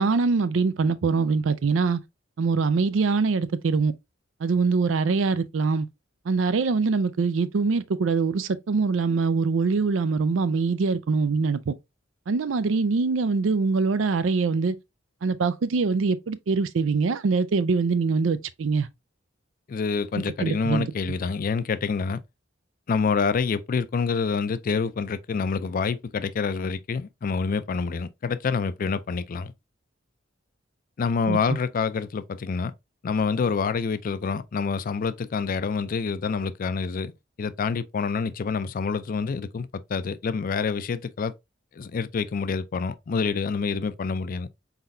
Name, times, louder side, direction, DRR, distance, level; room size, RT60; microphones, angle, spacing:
voice 1, 0.0-2.0 2.4-3.9 4.4-5.9 6.3-11.7 12.3-14.8 15.2-18.9 20.4-20.9 31.3-31.4, right 4 dB, 90° right, 0.4 m, -23 dB
voice 2, 19.7-22.2 22.9-29.5 31.0-32.7 33.0-37.1 37.4-41.3 41.8-44.5, left 5 dB, 45° left, 0.4 m, -27 dB
4.3 x 3.9 x 2.6 m
head